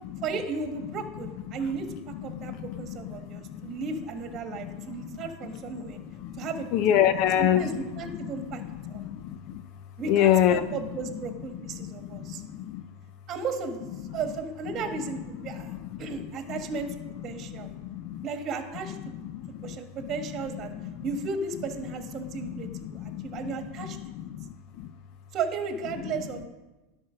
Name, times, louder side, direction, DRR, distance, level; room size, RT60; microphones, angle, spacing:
voice 1, 0.2-6.0 6.4-6.7 7.0-8.6 8.9-9.0 10.0-12.4 13.3-13.8 14.1-17.7 18.2-19.0 19.6-20.7 21.0-24.0 25.3-26.5, right 4 dB, 35° right, 6 dB, 1.3 m, -35 dB
voice 2, 2.3-3.7 4.6-5.2 5.8-7.7 8.1-9.6 10.0-10.6 11.7-12.8 15.5-15.6 15.9-16.3 17.4-18.2 19.1-19.7 20.8-21.0 22.5-23.5 23.8-24.9, left 10 dB, 50° left, 13 dB, 0.5 m, -28 dB
11.0 x 4.4 x 6.3 m, 1.1 s
hypercardioid pair, 120°, 0 cm